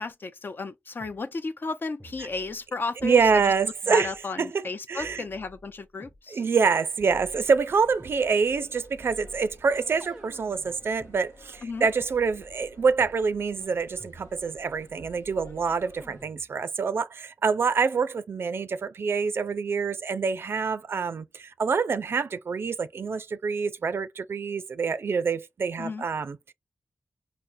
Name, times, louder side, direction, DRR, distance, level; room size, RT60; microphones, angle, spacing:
voice 1, 0.0-3.4 3.9-6.4 11.6-11.9 25.8-26.1, left 3 dB, 55° left, 0.5 m, -34 dB
sound 1, 1.0-1.2 2.0-2.7 3.0-4.2 5.0-6.2 7.0-8.2 9.0-11.1 12.0-12.1 13.0-13.2 14.0-14.7 15.0-15.6 16.0-16.6, equal, 5° right, 0.6 m, -50 dB
voice 2, 3.0-4.1 4.4-4.6 4.9-5.2 6.3-26.4, right 5 dB, 65° right, 0.3 m, -26 dB
sound 2, 7.4-16.3, left 2 dB, 85° left, 0.8 m, -53 dB
4.8 x 2.0 x 2.6 m
wide cardioid pair, 80°, 4 cm